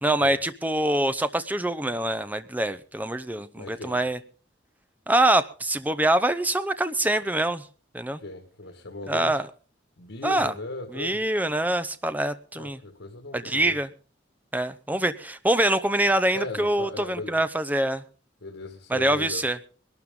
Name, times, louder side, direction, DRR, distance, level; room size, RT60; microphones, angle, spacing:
voice 1, 0.0-4.2 5.1-7.6 7.9-8.2 9.1-9.5 10.2-10.5 10.9-12.8 13.3-13.9 14.5-18.0 18.9-19.6, right 1 dB, 10° right, 12 dB, 0.7 m, -24 dB
voice 2, 3.6-4.0 8.2-9.4 10.0-11.2 12.6-13.8 16.3-17.4 18.4-19.5, left 2 dB, 90° left, 5 dB, 1.7 m, -38 dB
21.0 x 12.0 x 3.8 m, 0.37 s
head